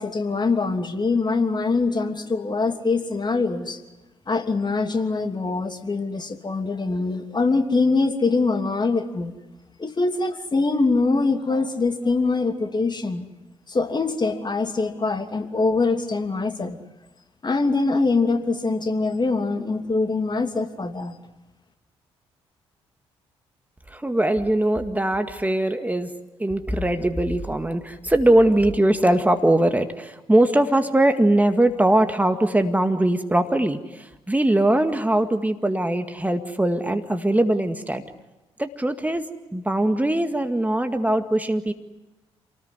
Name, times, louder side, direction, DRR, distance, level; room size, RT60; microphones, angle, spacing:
voice 1, 0.0-3.8 4.3-9.3 9.8-13.3 13.7-16.8 17.4-21.1, left 3 dB, 30° left, 7 dB, 2.9 m, -23 dB
voice 2, 23.9-26.1 26.4-38.0 38.6-39.3 39.5-41.7, right 1 dB, 10° right, 7 dB, 2.0 m, -21 dB
28.5 x 19.5 x 9.7 m, 1.0 s
figure-of-eight pair, 40°, 14 cm